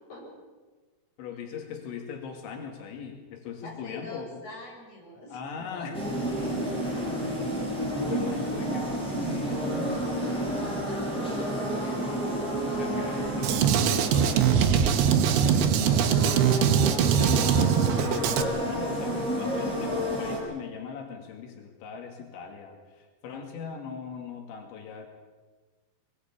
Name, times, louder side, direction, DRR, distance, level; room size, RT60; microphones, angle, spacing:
voice 1, 1.2-4.4 5.3-6.1 6.8-10.1 12.8-14.7 15.7-16.3 17.0-25.1, left 6 dB, 85° left, 3 dB, 4.6 m, -40 dB
voice 2, 3.6-5.4 5.7-5.9 6.2-6.3 10.8-12.7 15.4-16.2 19.2-19.3, left 1 dB, 35° left, -1 dB, 7.7 m, -42 dB
sound 1, 5.9-20.4, right 1 dB, ahead, 7.2 m, -30 dB
Drum kit, 13.4-18.4, right 8 dB, 85° right, 3.7 m, -22 dB
22.0 x 21.5 x 8.6 m, 1.3 s
omnidirectional pair, 5.1 m